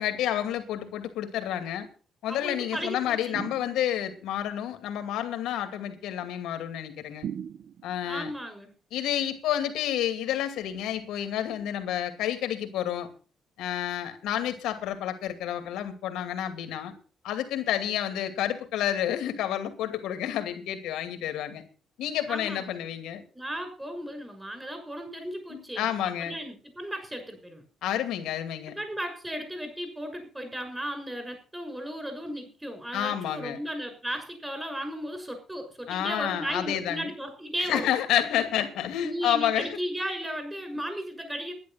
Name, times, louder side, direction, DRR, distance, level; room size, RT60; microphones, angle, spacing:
voice 1, 0.0-1.9 2.2-7.3 7.8-8.3 8.9-13.1 13.6-16.9 17.2-21.6 22.0-23.2 25.5-26.3 27.8-28.8 32.9-33.6 35.9-37.1 37.7-39.8, left 11 dB, 90° left, 8 dB, 2.3 m, -30 dB
voice 2, 2.3-3.4 8.1-8.7 22.3-22.8 23.3-25.9 26.2-27.6 28.8-37.9 39.0-41.5, equal, 10° right, 6 dB, 6.4 m, -35 dB
sound 1, 3.3-4.2 7.2-8.1, right 8 dB, 65° right, 0.9 m, -38 dB
12.0 x 10.5 x 5.8 m, 0.37 s
cardioid pair, 90°, 0 cm